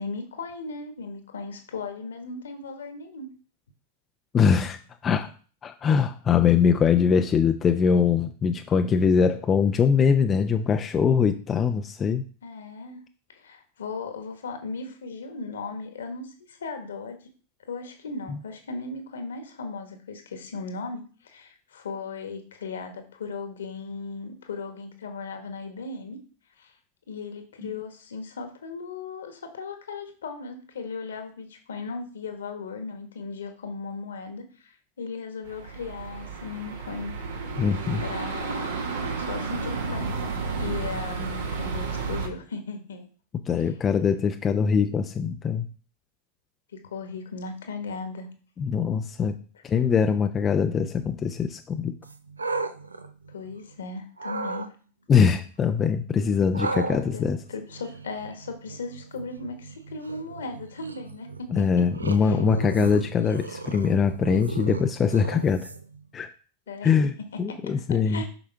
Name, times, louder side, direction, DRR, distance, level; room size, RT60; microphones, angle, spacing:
voice 1, 0.0-3.3 12.4-13.0 13.3-17.2 17.7-26.2 26.6-26.7 27.1-37.1 38.0-38.8 39.2-43.1 46.7-48.3 53.3-54.7 57.1-61.6 62.2-62.4 66.7-66.9 67.5-68.3, left 4 dB, 65° left, 6 dB, 1.5 m, -37 dB
voice 2, 4.3-4.8 5.0-5.3 5.6-12.2 18.3-18.4 27.6-27.8 37.6-38.0 43.5-45.7 48.6-49.4 49.6-51.9 55.1-57.4 61.5-65.7 66.1-66.3 66.8-67.1 67.4-68.2, left 6 dB, 25° left, 6 dB, 0.6 m, -22 dB
sound 1, 35.4-42.3, right 4 dB, 65° right, 1.5 m, -32 dB
sound 2, 52.0-53.8 54.2-54.7 56.5-66.0, right 3 dB, 80° right, 0.6 m, -35 dB
7.9 x 6.1 x 3.4 m, 0.39 s
figure-of-eight pair, 90°, 0 cm